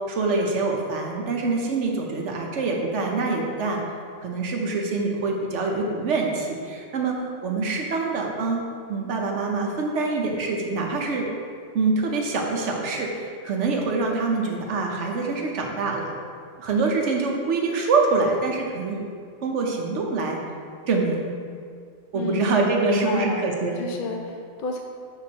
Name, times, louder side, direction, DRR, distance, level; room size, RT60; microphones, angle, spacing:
voice 1, 0.1-3.8 4.2-7.1 7.4-8.6 8.9-11.3 11.7-16.1 16.6-19.1 19.4-20.4 20.9-21.3 22.1-23.8, right 3 dB, 65° right, 1 dB, 1.0 m, -25 dB
voice 2, 22.1-22.6 22.8-24.8, left 3 dB, 60° left, 3 dB, 0.5 m, -30 dB
6.8 x 6.2 x 2.8 m, 2.2 s
omnidirectional pair, 1.4 m